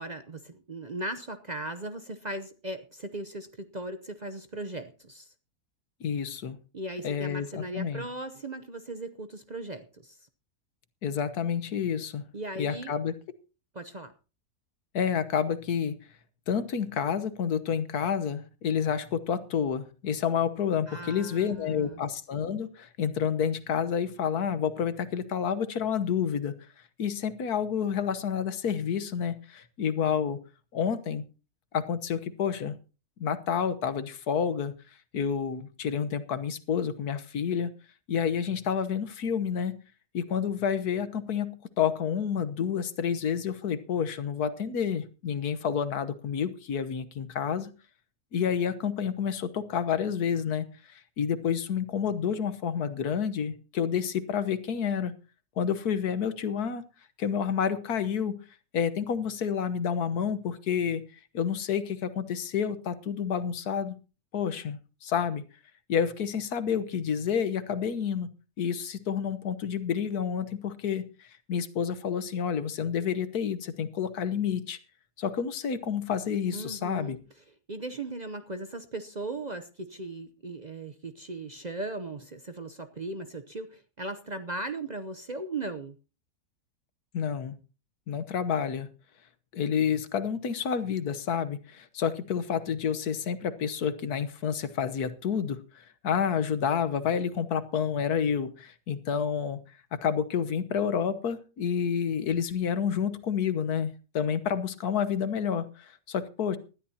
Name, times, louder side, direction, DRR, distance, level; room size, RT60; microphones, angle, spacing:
voice 1, 0.0-5.3 6.7-10.3 12.3-12.9 13.7-14.1 20.9-22.0 76.5-77.2 77.7-86.0, right 2 dB, 40° right, 9 dB, 0.7 m, -38 dB
voice 2, 6.0-6.6 7.0-8.0 11.0-12.2 12.6-13.1 14.9-15.9 16.5-26.5 27.0-30.4 30.7-31.2 31.7-32.8 33.2-34.7 35.1-37.7 38.1-39.8 40.1-47.7 48.3-50.7 50.9-55.1 55.6-56.8 57.2-58.4 58.7-61.0 61.3-64.0 64.3-65.4 65.9-68.3 68.6-74.8 75.2-77.2 87.1-87.6 88.1-88.9 89.5-99.6 99.9-106.6, left 7 dB, 80° left, 13 dB, 1.6 m, -29 dB
19.5 x 12.5 x 2.8 m, 0.33 s
omnidirectional pair, 1.6 m